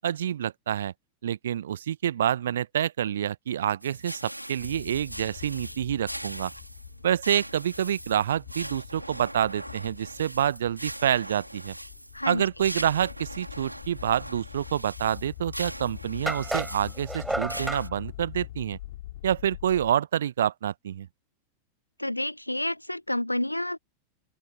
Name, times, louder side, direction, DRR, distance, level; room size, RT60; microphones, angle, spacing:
voice 1, 0.0-0.9 1.2-6.5 7.0-11.7 12.3-18.8 19.2-21.1, right 10 dB, 65° right, 0.9 m, -27 dB
sound 1, 3.8-17.9, right 1 dB, 90° right, 3.8 m, -41 dB
sound 2, 4.6-19.9, left 15 dB, 55° left, 6.1 m, -44 dB
sound 3, 16.3-17.9, right 1 dB, 5° right, 6.3 m, -31 dB
voice 2, 22.0-23.8, left 1 dB, 85° left, 0.8 m, -29 dB
open air
figure-of-eight pair, 90°, 0 cm